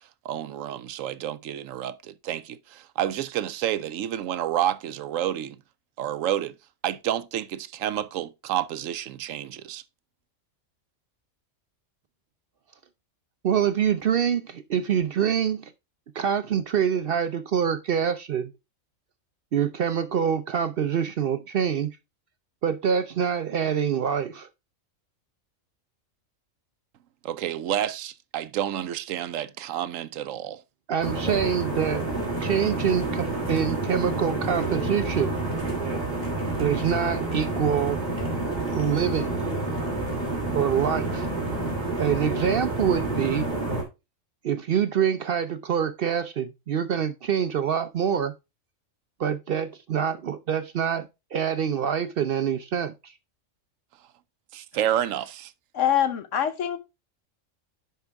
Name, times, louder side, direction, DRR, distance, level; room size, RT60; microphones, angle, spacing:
voice 1, 0.2-5.6 6.0-6.5 6.8-9.8 27.2-30.6 54.5-55.5, right 11 dB, 80° right, 1.0 m, -29 dB
voice 2, 13.4-15.7 16.2-18.5 19.5-21.9 22.6-24.5 30.9-32.1 32.4-35.3 36.6-38.0 38.7-39.4 40.5-41.3 42.0-43.5 44.4-48.3 49.2-53.1, right 8 dB, 60° right, 0.6 m, -25 dB
sound 1, 31.0-43.8, right 2 dB, 30° right, 3.0 m, -29 dB
voice 3, 55.7-56.8, left 10 dB, 70° left, 1.3 m, -24 dB
10.5 x 4.8 x 3.4 m
omnidirectional pair, 1.3 m